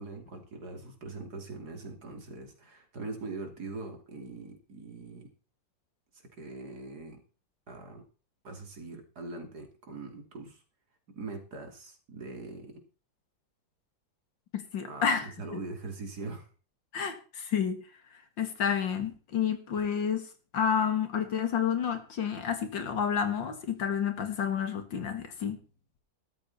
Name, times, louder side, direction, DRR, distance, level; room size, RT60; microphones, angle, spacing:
voice 1, 0.0-5.3 6.1-7.2 7.7-8.0 8.4-10.6 11.1-12.8 14.9-16.5, right 3 dB, 60° right, 5 dB, 3.3 m, -42 dB
voice 2, 14.5-15.3 16.9-17.8 18.4-20.3 20.5-25.6, left 7 dB, 85° left, 8 dB, 2.6 m, -30 dB
14.0 x 12.5 x 4.2 m, 0.36 s
omnidirectional pair, 2.0 m